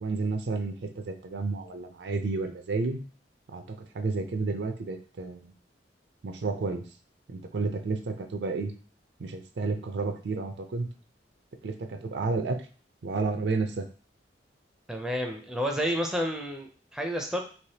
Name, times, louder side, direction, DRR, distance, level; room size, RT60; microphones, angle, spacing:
voice 1, 0.0-3.0 3.5-5.5 6.2-6.8 7.3-8.7 9.2-10.9 11.6-12.6 13.0-13.9, right 3 dB, 70° right, 6 dB, 0.5 m, -31 dB
voice 2, 14.9-17.4, equal, 5° right, 2 dB, 0.4 m, -30 dB
3.3 x 2.9 x 2.8 m, 0.39 s
head